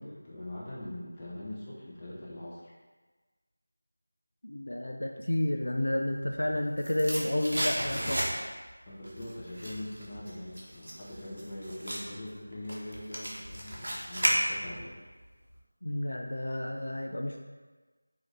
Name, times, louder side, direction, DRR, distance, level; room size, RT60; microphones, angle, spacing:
voice 1, 0.0-2.7 8.8-15.0, left 1 dB, 20° left, -7 dB, 0.7 m, -42 dB
voice 2, 4.4-8.2 15.8-17.4, left 1 dB, 70° left, 2 dB, 0.3 m, -31 dB
sound 1, 6.3-8.7 9.0-14.9 15.2-15.3, equal, 65° right, 0.9 m, -33 dB
4.8 x 2.6 x 3.1 m, 1.3 s
figure-of-eight pair, 170°, 0 cm